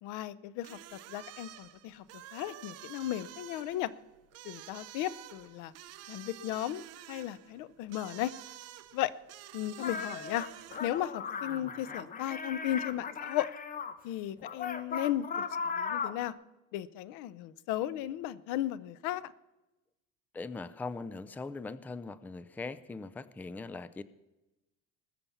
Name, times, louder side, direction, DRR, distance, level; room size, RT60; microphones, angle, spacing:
voice 1, 0.0-2.0 2.3-3.9 4.4-5.7 6.1-8.3 8.9-9.1 9.5-10.5 10.8-13.5 14.0-16.3 16.7-19.3, left 13 dB, 85° left, 18 dB, 0.8 m, -35 dB
sound 1, 0.6-11.1, right 13 dB, 55° right, 0.8 m, -50 dB
sound 2, 9.8-13.9 14.4-16.3, left 6 dB, 30° left, 0.9 m, -37 dB
voice 2, 20.3-24.0, left 3 dB, 5° left, 15 dB, 0.4 m, -40 dB
20.5 x 7.0 x 7.1 m, 1.0 s
cardioid pair, 145°, 30 cm